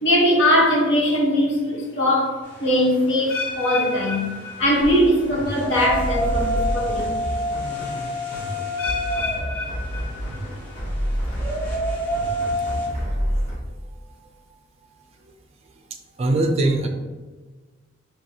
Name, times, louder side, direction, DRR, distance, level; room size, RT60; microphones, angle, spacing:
voice 1, 0.0-4.3 4.6-7.2, equal, 65° left, -3 dB, 1.0 m, -20 dB
sound 1, 2.4-12.9, equal, 10° left, 1.3 m, -30 dB
sound 2, 3.3-5.3 5.6-6.0 6.7-6.8 8.8-10.7 11.1-11.5 12.1-12.2, left 4 dB, 90° left, 0.7 m, -32 dB
sound 3, 4.8-13.5, equal, 35° left, 1.2 m, -29 dB
voice 2, 16.2-16.9, right 2 dB, 30° right, 3 dB, 0.4 m, -20 dB
5.4 x 2.9 x 2.7 m, 1.3 s
head